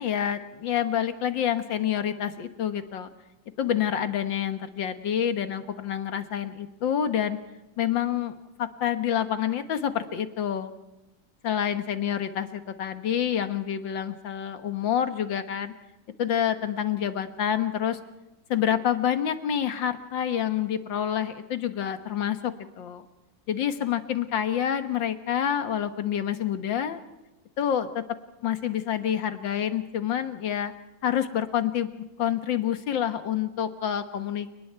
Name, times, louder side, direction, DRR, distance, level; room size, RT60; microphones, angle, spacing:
voice 1, 0.0-3.1 3.6-7.4 7.8-10.7 11.4-15.7 16.2-18.0 18.5-23.0 23.5-27.0 27.6-28.0 28.4-30.7 31.0-31.9 32.2-34.5, left 9 dB, 85° left, 9 dB, 2.1 m, -27 dB
30.0 x 19.5 x 4.6 m, 0.98 s
omnidirectional pair, 2.0 m